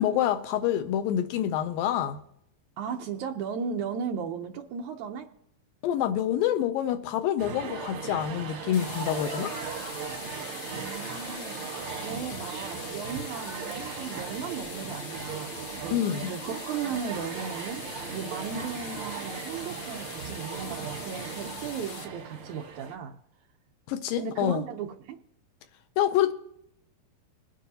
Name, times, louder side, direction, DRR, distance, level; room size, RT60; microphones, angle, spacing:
voice 1, 0.0-2.2 5.8-9.6 15.9-16.3 23.9-24.7 26.0-26.3, left 10 dB, 80° left, 2.2 m, -27 dB
voice 2, 2.8-5.3 10.6-16.0 16.3-16.4 16.7-17.8 18.1-23.2 24.2-25.2, right 6 dB, 90° right, 1.6 m, -36 dB
sound 1, 7.4-23.0, right 6 dB, 65° right, 1.3 m, -38 dB
sound 2, 8.7-22.0, left 5 dB, 60° left, 2.3 m, -43 dB
21.5 x 10.0 x 2.8 m
omnidirectional pair, 4.4 m